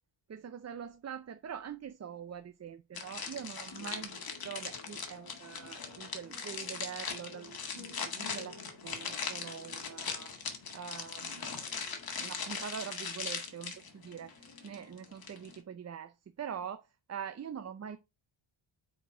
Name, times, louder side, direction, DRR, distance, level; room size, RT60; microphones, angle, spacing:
voice 1, 0.3-8.6 8.8-10.3 10.7-11.5 12.2-14.4 14.6-16.8 17.1-18.0, right 8 dB, 35° right, 0.6 m, -44 dB
sound 1, 3.0-15.6, left 5 dB, 50° left, 2.0 m, -40 dB
9.3 x 4.5 x 4.4 m
wide cardioid pair, 140°, 47 cm